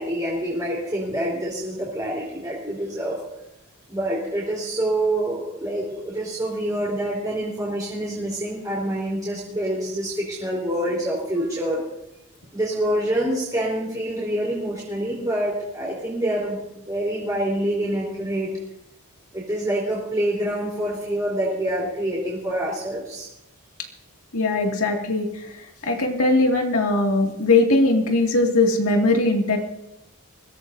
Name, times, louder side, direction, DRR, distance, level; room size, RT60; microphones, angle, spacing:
voice 1, 0.0-3.2 3.9-11.8 12.5-18.5 19.3-23.3, right 1 dB, 15° right, -6 dB, 3.8 m, -26 dB
voice 2, 24.3-29.6, left 2 dB, 80° left, 1 dB, 2.3 m, -20 dB
22.5 x 16.5 x 2.7 m, 0.88 s
head